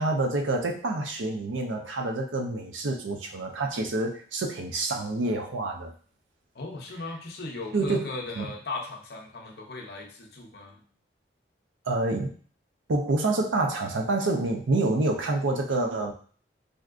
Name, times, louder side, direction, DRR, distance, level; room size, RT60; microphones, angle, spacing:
voice 1, 0.0-5.9 7.7-8.1 8.4-8.5 11.9-12.3 12.9-16.1, right 2 dB, 90° right, 3 dB, 0.5 m, -27 dB
voice 2, 6.5-10.8, left 3 dB, 55° left, 1 dB, 0.6 m, -37 dB
3.5 x 2.6 x 2.4 m, 0.43 s
head